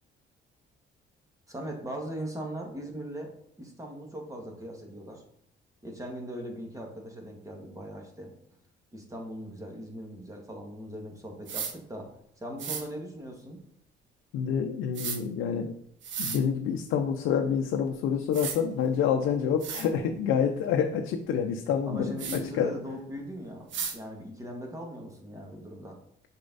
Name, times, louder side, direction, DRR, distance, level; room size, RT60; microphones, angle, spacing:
voice 1, 1.5-3.3 3.6-5.2 5.8-8.3 8.9-12.1 12.4-13.6 21.9-26.0, equal, 15° right, 0 dB, 1.9 m, -39 dB
sound 1, 11.5-11.7 12.6-12.8 14.9-15.2 16.0-16.4 17.9-18.0 18.3-18.6 19.2-19.3 19.6-19.9 22.2-22.4 23.7-24.0, right 6 dB, 70° right, 1.1 m, -34 dB
voice 2, 14.3-15.7 16.2-22.1 22.6-22.7, left 7 dB, 90° left, 4 dB, 0.6 m, -27 dB
6.7 x 4.4 x 4.0 m, 0.68 s
cardioid pair, 90°, 20 cm